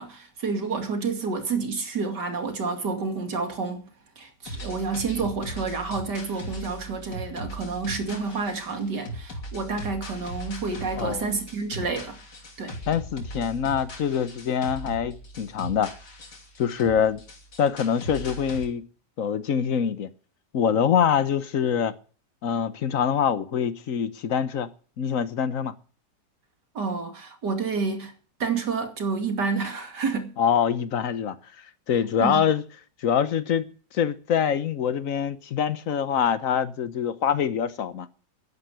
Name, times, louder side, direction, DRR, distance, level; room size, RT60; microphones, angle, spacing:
voice 1, 0.0-3.9 4.2-12.2 12.6-12.8 26.7-28.1 28.4-30.3 32.2-32.5, right 4 dB, 75° right, 3.1 m, -29 dB
sound 1, 4.4-18.7, equal, 85° left, 3.4 m, -39 dB
voice 2, 12.9-15.9 16.6-17.2 17.6-18.9 19.2-20.1 20.5-22.0 22.4-24.7 25.0-25.7 30.4-31.4 31.9-32.6 33.0-38.1, left 8 dB, 55° left, 1.3 m, -24 dB
12.5 x 10.5 x 8.1 m
omnidirectional pair, 1.8 m